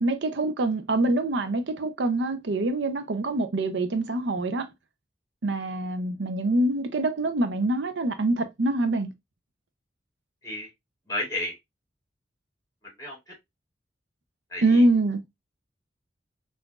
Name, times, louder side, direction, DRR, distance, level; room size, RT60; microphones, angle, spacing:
voice 1, 0.0-4.7 5.4-9.1 14.6-15.2, right 2 dB, 75° right, 0.6 m, -25 dB
voice 2, 11.1-11.5 13.0-13.3 14.5-14.8, left 1 dB, 20° left, 2.2 m, -32 dB
5.8 x 2.5 x 2.3 m
head